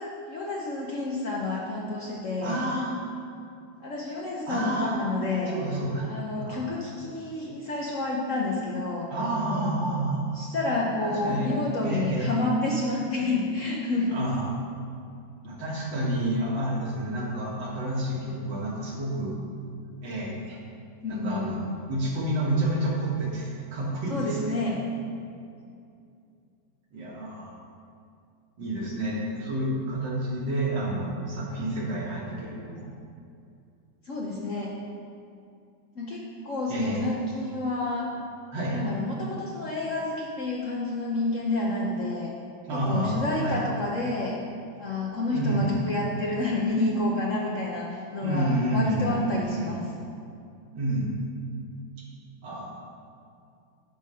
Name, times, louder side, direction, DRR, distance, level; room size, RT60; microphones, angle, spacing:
voice 1, 0.0-2.6 3.8-5.5 6.0-9.1 10.3-14.2 21.0-21.8 24.1-24.8 34.0-34.7 35.9-38.1 38.7-42.3 42.7-44.4 44.8-49.8, left 2 dB, 55° left, -3 dB, 0.9 m, -29 dB
voice 2, 2.4-3.0 4.5-5.0 5.5-6.1 6.4-6.7 9.1-10.3 11.0-11.5 11.8-12.3 14.1-14.5 15.4-19.3 20.0-20.6 21.1-21.6 21.9-24.5 26.9-27.6 28.6-32.8 36.7-37.1 38.5-38.8 42.7-43.6 45.3-45.9 48.2-49.7 50.7-51.1 52.4-52.7, right 1 dB, 70° right, -4 dB, 2.3 m, -29 dB
11.0 x 4.0 x 5.5 m, 2.5 s
omnidirectional pair, 2.1 m